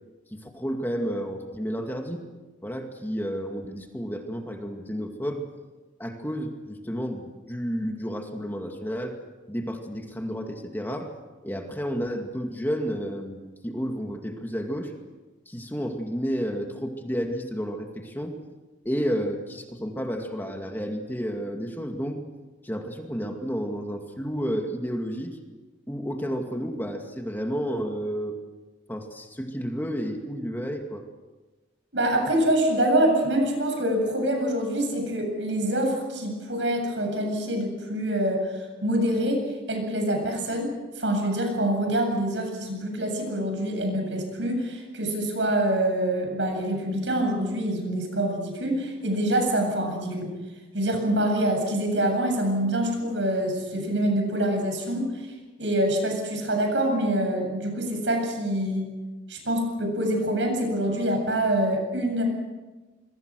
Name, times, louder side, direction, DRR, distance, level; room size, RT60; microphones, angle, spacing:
voice 1, 0.3-2.2 2.6-5.4 6.0-9.2 9.5-11.1 11.4-14.9 15.5-18.4 18.8-22.2 22.6-25.4 25.9-28.4 28.9-31.0, equal, 10° left, 3 dB, 2.2 m, -31 dB
voice 2, 31.9-38.5 38.8-39.4 39.7-50.3 50.7-55.2 55.6-58.9 59.3-62.2, right 1 dB, 80° right, 3 dB, 8.0 m, -25 dB
26.5 x 22.5 x 6.4 m, 1.2 s
head